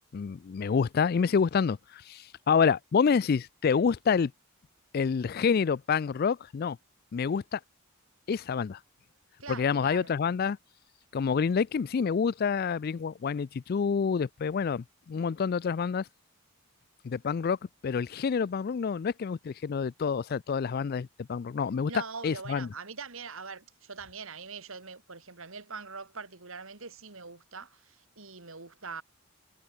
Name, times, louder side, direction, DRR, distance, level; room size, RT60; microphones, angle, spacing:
voice 1, 0.1-4.3 4.9-6.8 7.1-7.6 8.3-8.8 9.5-10.6 11.1-16.1 17.0-17.6 17.8-21.9 22.2-22.7, left 6 dB, 45° left, 0.3 m, -28 dB
voice 2, 9.4-10.2 21.9-29.0, right 4 dB, 65° right, 2.6 m, -43 dB
head